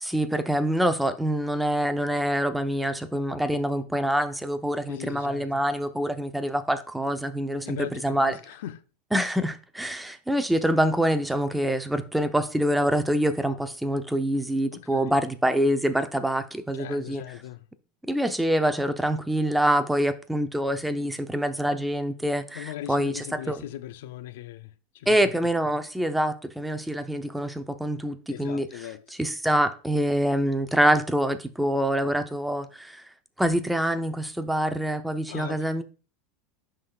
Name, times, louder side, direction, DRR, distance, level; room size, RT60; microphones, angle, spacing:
voice 1, 0.0-8.3 9.1-17.2 18.1-23.6 25.1-28.7 29.2-33.0 33.4-35.8, equal, 5° right, 0.7 m, -25 dB
voice 2, 4.9-5.6 7.6-8.8 14.7-15.2 16.7-17.7 22.5-25.3 28.3-29.1 35.3-35.7, left 11 dB, 75° left, 0.4 m, -39 dB
11.5 x 3.8 x 2.4 m
hypercardioid pair, 105°, 0 cm